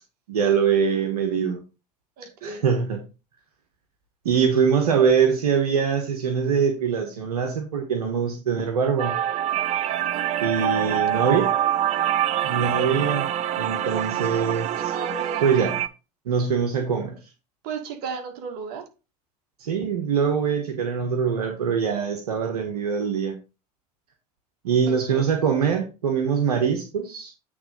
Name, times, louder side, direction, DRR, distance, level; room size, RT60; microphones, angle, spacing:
voice 1, 0.3-1.6 2.4-3.0 4.2-9.1 10.4-11.5 12.4-13.3 13.6-14.9 15.4-15.8 16.2-17.2 19.6-23.3 24.6-27.3, right 6 dB, 75° right, 1.4 m, -23 dB
voice 2, 2.2-2.7 10.1-10.4 14.7-15.5 17.6-18.9 24.9-25.3, right 5 dB, 50° right, 1.9 m, -35 dB
sound 1, 9.0-15.9, right 11 dB, 35° right, 0.6 m, -25 dB
8.7 x 3.7 x 5.2 m
figure-of-eight pair, 75°, 20 cm